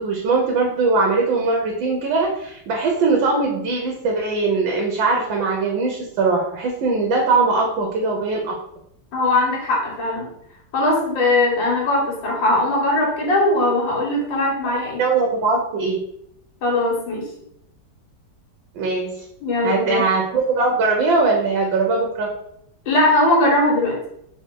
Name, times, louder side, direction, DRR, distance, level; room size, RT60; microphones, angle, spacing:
voice 1, 0.0-8.6 15.0-16.0 18.7-19.2 19.6-22.3, right 3 dB, 90° right, 1 dB, 1.5 m, -20 dB
voice 2, 9.1-10.3 10.7-15.0 16.6-17.3 19.4-20.0 22.9-24.0, left 2 dB, 85° left, -1 dB, 1.9 m, -19 dB
3.5 x 3.3 x 4.5 m, 0.75 s
omnidirectional pair, 2.0 m